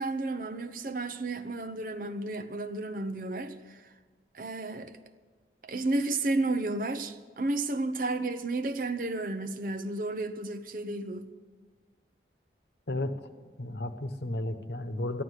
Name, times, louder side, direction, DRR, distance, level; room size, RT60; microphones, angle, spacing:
voice 1, 0.0-3.8 4.3-4.9 5.6-11.3, right 2 dB, 50° right, 0.8 m, -32 dB
voice 2, 12.9-13.2 13.6-15.2, left 1 dB, 65° left, 1.1 m, -33 dB
14.0 x 11.0 x 8.2 m
head